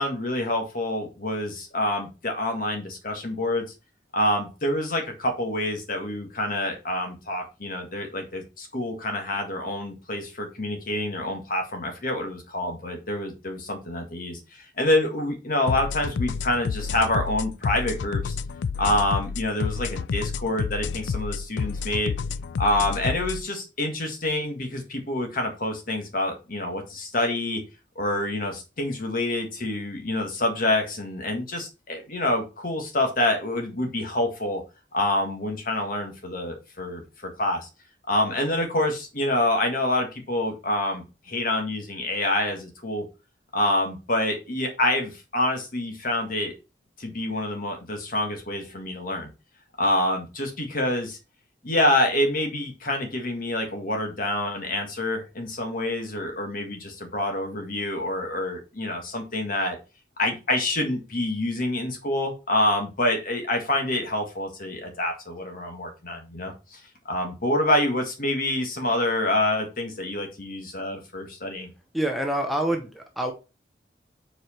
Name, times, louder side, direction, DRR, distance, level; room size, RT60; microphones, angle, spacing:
voice 1, 0.0-3.7 4.1-18.4 18.8-22.1 22.6-27.6 27.9-34.6 34.9-37.7 38.1-43.0 43.5-46.5 47.0-49.3 49.8-51.2 51.6-59.8 60.2-66.8 67.1-71.7, left 1 dB, 50° left, 3 dB, 1.7 m, -27 dB
sound 1, 15.7-23.4, left 5 dB, 80° left, 0.4 m, -29 dB
voice 2, 71.9-73.3, right 1 dB, ahead, 3 dB, 0.7 m, -26 dB
4.9 x 4.8 x 4.3 m, 0.30 s
head